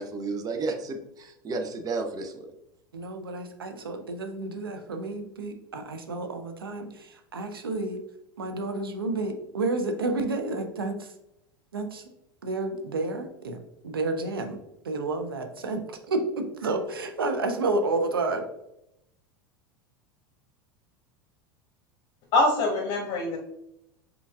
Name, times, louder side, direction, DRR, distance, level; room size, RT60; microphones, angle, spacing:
voice 1, 0.0-2.5, right 3 dB, 30° right, 6 dB, 0.7 m, -32 dB
voice 2, 2.9-8.0 8.4-11.1 11.7-12.1 12.4-13.6 13.8-14.6 14.8-18.5, right 2 dB, 90° right, 6 dB, 0.7 m, -30 dB
voice 3, 22.3-23.4, left 2 dB, 50° left, -2 dB, 1.2 m, -24 dB
5.7 x 3.9 x 2.4 m, 0.82 s
hypercardioid pair, 85°, 12 cm